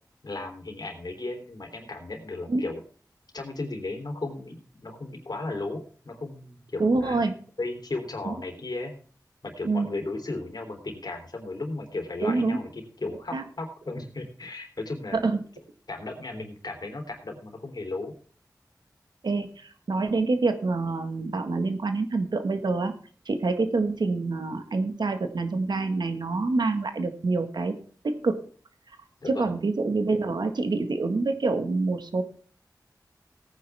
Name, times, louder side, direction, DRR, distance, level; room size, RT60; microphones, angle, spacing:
voice 1, 0.2-2.8 3.3-7.2 7.6-8.9 9.4-12.7 13.0-15.2 15.9-18.1 29.2-29.5, left 2 dB, 70° left, 4 dB, 3.2 m, -35 dB
voice 2, 6.8-7.3 8.2-8.3 9.6-9.9 12.2-12.6 13.3-13.4 15.1-15.4 19.2-22.9 23.3-27.7 28.0-28.4 29.3-32.2, right 3 dB, 90° right, 7 dB, 1.6 m, -26 dB
17.5 x 9.5 x 3.5 m, 0.43 s
wide cardioid pair, 55°, 7 cm